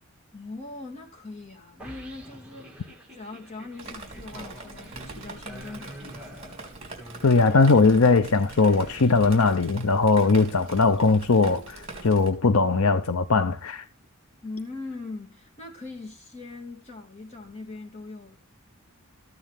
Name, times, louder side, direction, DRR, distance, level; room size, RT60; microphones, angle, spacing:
voice 1, 0.3-6.6 14.4-18.4, left 3 dB, 30° left, 2.9 m, -41 dB
sound 1, 1.8-10.1, equal, 5° right, 2.7 m, -46 dB
Drip, 3.8-12.3, right 3 dB, 30° right, 3.7 m, -42 dB
voice 2, 7.2-13.8, left 3 dB, 75° left, 0.8 m, -20 dB
14.5 x 9.6 x 3.5 m
head